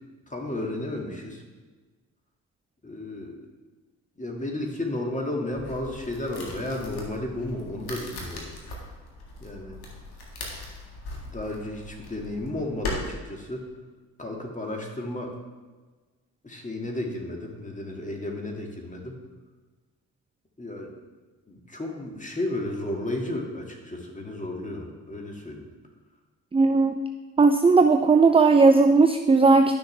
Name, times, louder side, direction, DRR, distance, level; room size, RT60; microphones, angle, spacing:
voice 1, 0.3-1.4 2.8-3.4 4.2-8.5 9.4-9.8 11.1-13.6 14.2-15.3 16.4-19.2 20.6-20.9 21.5-25.7, left 1 dB, 20° left, 1 dB, 2.1 m, -33 dB
sound 1, 5.5-12.9, left 2 dB, 65° left, 1.9 m, -39 dB
voice 2, 26.5-27.0 27.4-29.8, right 4 dB, 15° right, 6 dB, 0.5 m, -17 dB
11.0 x 6.3 x 3.4 m, 1.3 s
hypercardioid pair, 50°, 41 cm